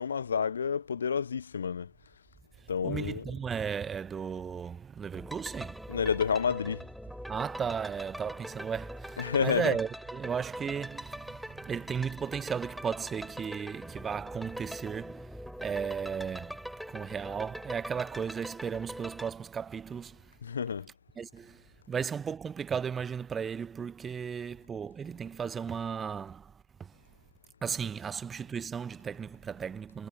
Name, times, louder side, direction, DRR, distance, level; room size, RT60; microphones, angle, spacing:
voice 1, 0.0-1.9 2.7-3.3 5.9-6.8 9.2-9.7 20.4-20.9, left 6 dB, 70° left, 0.3 m, -30 dB
voice 2, 2.8-5.9 7.3-20.3 21.2-26.5 26.8-26.9 27.6-30.1, right 7 dB, 20° right, 0.7 m, -35 dB
sound 1, 5.1-19.3, equal, ahead, 3.2 m, -43 dB
figure-of-eight pair, 90°, 0 cm